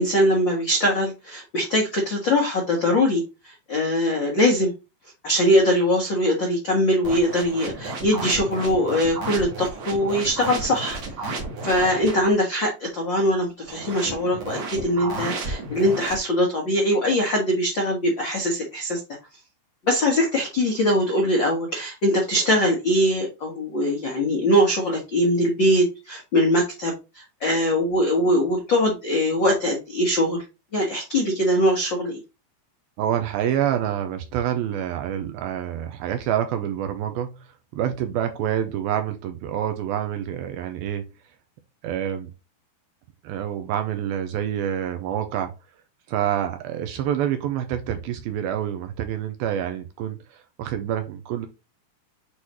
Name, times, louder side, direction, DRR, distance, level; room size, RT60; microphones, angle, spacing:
voice 1, 0.0-4.7 5.2-11.4 11.6-19.0 19.8-30.4 30.7-32.2, equal, 80° left, 1.0 m, -22 dB
sound 1, 7.0-12.3 13.7-16.2, right 3 dB, 50° right, 2.7 m, -32 dB
voice 2, 33.0-37.5 37.7-41.1 41.8-42.3 43.2-45.5 46.1-51.5, right 10 dB, 80° right, 2.3 m, -27 dB
8.4 x 4.0 x 3.1 m
omnidirectional pair, 4.7 m